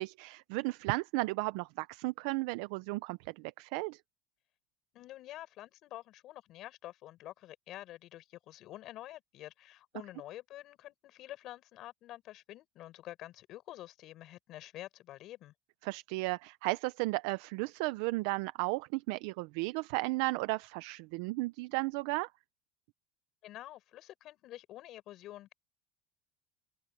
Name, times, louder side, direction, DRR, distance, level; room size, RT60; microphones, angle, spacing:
voice 1, 0.0-4.0 15.8-22.3, right 23 dB, 75° right, 0.6 m, -34 dB
voice 2, 4.9-15.5 23.4-25.5, left 14 dB, 50° left, 4.8 m, -48 dB
open air
supercardioid pair, 135°, 0 cm